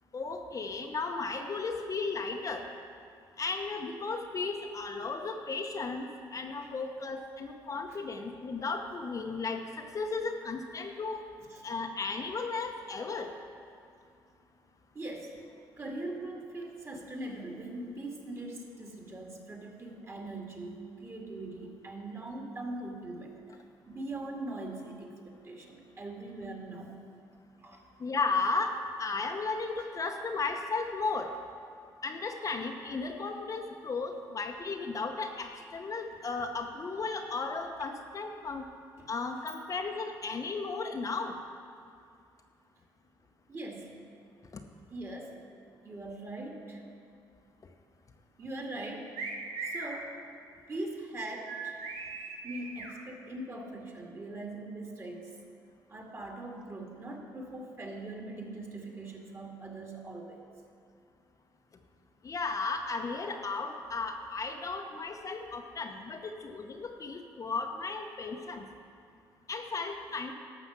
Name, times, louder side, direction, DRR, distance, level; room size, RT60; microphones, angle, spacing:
voice 1, 0.1-2.7 3.4-11.2 11.6-13.3 28.0-31.3 32.0-38.6 39.1-41.3 62.2-68.7 69.5-70.3, left 4 dB, 40° left, 4 dB, 0.8 m, -35 dB
voice 2, 14.9-15.4 15.8-23.3 23.9-27.0 27.6-27.8 39.0-39.1 43.5-43.9 44.9-45.4 45.8-46.8 48.4-49.1 49.6-50.1 50.7-51.8 52.4-55.3 55.9-60.4, right 2 dB, 30° right, 0 dB, 2.1 m, -41 dB
sound 1, 49.1-49.9 51.5-52.9, right 4 dB, 85° right, 1.5 m, -38 dB
12.0 x 6.8 x 5.9 m, 2.4 s
cardioid pair, 80°, 9 cm